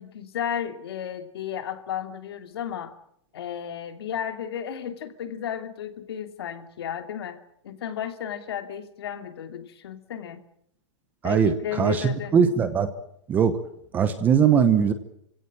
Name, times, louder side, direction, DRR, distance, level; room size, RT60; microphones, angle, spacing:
voice 1, 0.0-3.0 3.3-7.4 7.6-10.4 11.2-12.4, left 9 dB, 55° left, 8 dB, 2.7 m, -33 dB
voice 2, 11.2-12.9 13.3-13.6 13.9-14.9, right 7 dB, 10° right, 12 dB, 0.9 m, -20 dB
27.5 x 17.0 x 8.8 m, 0.73 s
hypercardioid pair, 175°, 15 cm